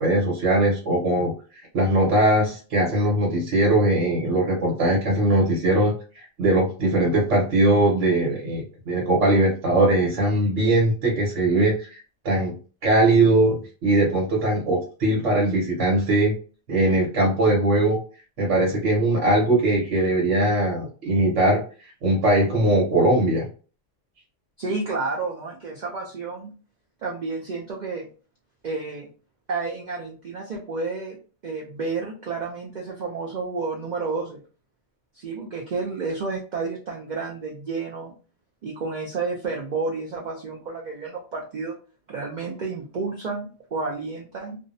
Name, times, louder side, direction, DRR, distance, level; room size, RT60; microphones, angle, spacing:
voice 1, 0.0-5.9 6.4-12.0 12.2-12.5 12.8-16.3 16.7-18.0 18.4-21.6 22.0-23.5, right 1 dB, 75° right, -2 dB, 1.2 m, -20 dB
voice 2, 24.6-26.5 27.0-28.1 28.6-29.1 29.5-31.2 31.4-34.4 35.1-38.2 38.6-41.8 42.1-44.6, right 4 dB, 55° right, -1 dB, 0.5 m, -30 dB
2.5 x 2.0 x 2.5 m, 0.37 s
omnidirectional pair, 1.3 m